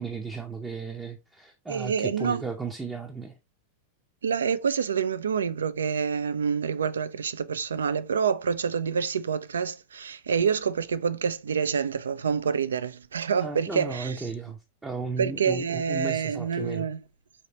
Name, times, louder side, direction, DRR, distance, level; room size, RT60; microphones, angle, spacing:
voice 1, 0.0-3.4 13.4-16.9, right 4 dB, 10° right, 0.5 m, -35 dB
voice 2, 1.7-2.4 4.2-14.3 15.2-17.0, right 6 dB, 70° right, 0.3 m, -27 dB
4.2 x 3.2 x 2.8 m
figure-of-eight pair, 90°, 0 cm